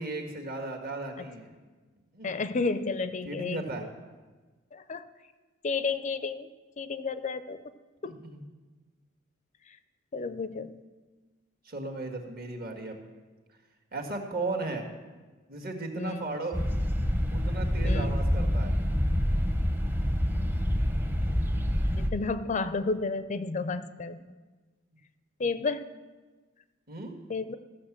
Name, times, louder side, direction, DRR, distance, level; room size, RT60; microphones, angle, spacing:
voice 1, 0.0-1.5 2.1-2.3 3.2-3.9 8.1-8.4 11.7-13.0 13.9-14.9 15.5-16.6 17.3-18.8 26.9-27.2, right 2 dB, 50° right, 3 dB, 1.7 m, -36 dB
voice 2, 2.2-3.9 4.7-5.0 5.6-6.5 6.8-7.6 8.0-8.1 10.1-10.8 16.0-16.2 17.8-18.2 21.1-21.2 21.9-24.2 25.4-25.9 27.3-27.6, left 4 dB, 40° left, 12 dB, 0.5 m, -31 dB
sound 1, 16.5-22.1, equal, 10° right, 0.7 m, -27 dB
14.0 x 6.8 x 7.3 m, 1.3 s
head